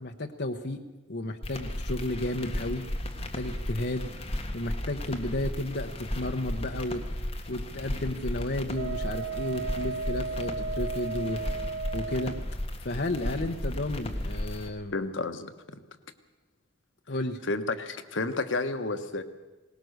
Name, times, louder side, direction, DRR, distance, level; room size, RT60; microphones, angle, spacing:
voice 1, 0.0-2.9 3.2-4.1 4.5-7.1 7.5-11.6 11.9-12.4 12.8-14.9 17.1-17.4, left 1 dB, 60° left, 4 dB, 1.0 m, -33 dB
sound 1, 1.4-14.7, left 1 dB, 30° left, 1.6 m, -35 dB
Wind instrument woodwind instrument, 8.7-12.4, right 4 dB, 65° right, 0.9 m, -35 dB
voice 2, 14.9-15.8 17.5-19.2, left 3 dB, 80° left, 9 dB, 1.2 m, -31 dB
21.0 x 19.0 x 6.6 m, 1.1 s
head